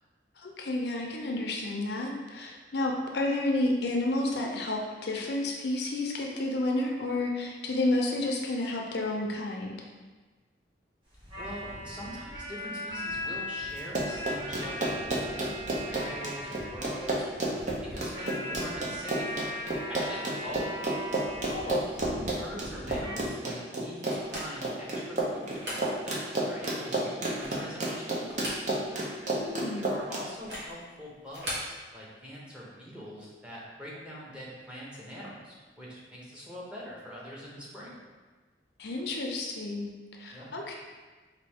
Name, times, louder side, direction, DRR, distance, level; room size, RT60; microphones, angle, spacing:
voice 1, 0.4-9.8 21.5-21.8 29.3-29.9 38.8-39.9 40.2-40.8, left 2 dB, 65° left, 0 dB, 0.5 m, -30 dB
sound 1, 11.1-23.3, equal, 30° right, 1.3 m, -39 dB
voice 2, 11.3-15.4 15.7-17.2 17.9-19.3 19.9-20.9 21.9-28.6 29.8-38.0 40.3-40.5, equal, 5° right, -6 dB, 0.8 m, -43 dB
Run, 13.8-30.2, right 2 dB, 45° right, 0.7 m, -31 dB
sound 2, 24.1-24.8 25.4-25.9 26.3-26.4 27.1-27.7 28.2-29.0 29.3-29.4 30.3-30.7 31.3-31.7, equal, 80° right, 1.3 m, -39 dB
4.2 x 2.6 x 3.5 m, 1.3 s
head